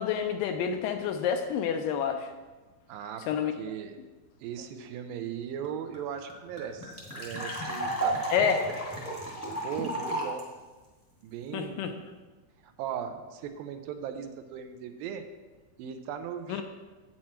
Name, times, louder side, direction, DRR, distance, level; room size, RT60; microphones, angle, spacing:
voice 1, 0.0-2.3 3.3-3.5 8.3-8.6 11.5-11.9 16.5-16.6, left 7 dB, 80° left, 6 dB, 2.1 m, -28 dB
voice 2, 2.9-4.0 4.4-8.3 9.5-10.5 11.2-11.9 12.6-15.3 15.8-16.6, right 8 dB, 80° right, 7 dB, 2.3 m, -38 dB
sound 1, 5.6-5.7 5.9-6.0 6.3-10.4, right 1 dB, 10° left, 0.9 m, -33 dB
8.6 x 7.4 x 4.3 m, 1.2 s
omnidirectional pair, 4.2 m